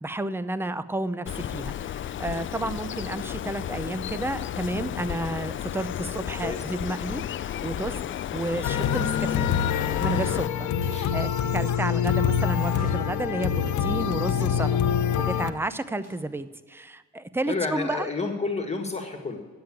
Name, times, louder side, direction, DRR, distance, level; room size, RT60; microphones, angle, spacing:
voice 1, 0.0-8.0 8.3-9.5 10.0-14.8 15.2-18.1, right 2 dB, 10° right, 14 dB, 0.6 m, -31 dB
Bird, 1.3-10.5, left 11 dB, 40° left, 0.4 m, -33 dB
sound 1, 7.9-8.4 9.5-9.6 10.8-11.1 11.5-14.6 16.0-16.5, right 1 dB, 55° right, 4.3 m, -48 dB
sound 2, 8.6-15.5, left 8 dB, 75° left, 0.8 m, -25 dB
voice 2, 17.5-19.4, left 3 dB, 20° left, 4 dB, 1.8 m, -30 dB
10.5 x 7.7 x 8.6 m, 1.4 s
cardioid pair, 90°, 30 cm